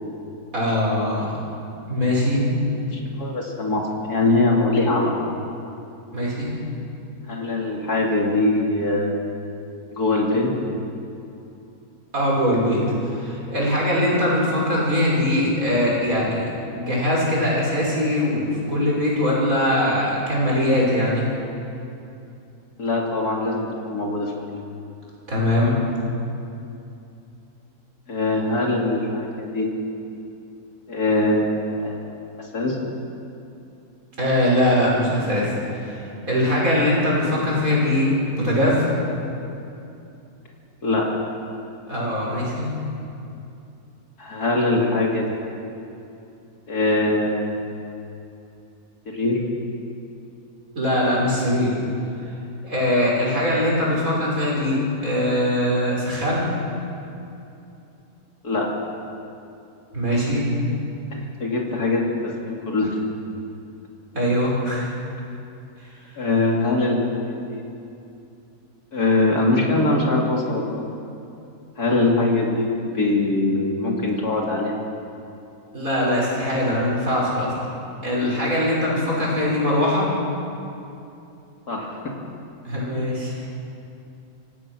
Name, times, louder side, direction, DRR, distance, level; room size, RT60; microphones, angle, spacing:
voice 1, 0.5-1.3 1.9-2.4 6.1-6.5 12.1-12.8 13.0-16.4 16.7-21.3 25.3-25.8 34.2-38.9 41.9-42.7 50.8-51.7 52.6-56.5 59.9-60.4 64.1-64.9 75.7-77.5 78.0-80.1 82.6-83.4, left 1 dB, 60° right, -4 dB, 6.3 m, -21 dB
voice 2, 2.7-5.4 7.3-9.2 9.9-10.5 22.8-24.6 28.1-29.7 30.9-32.0 32.4-32.8 40.8-41.1 44.2-45.4 46.7-47.6 49.1-49.4 58.4-58.7 61.2-63.0 66.2-67.6 68.9-70.8 71.8-74.8 81.7-82.1, left 2 dB, 75° left, -1 dB, 3.0 m, -22 dB
27.0 x 17.0 x 6.2 m, 2.7 s
omnidirectional pair, 1.6 m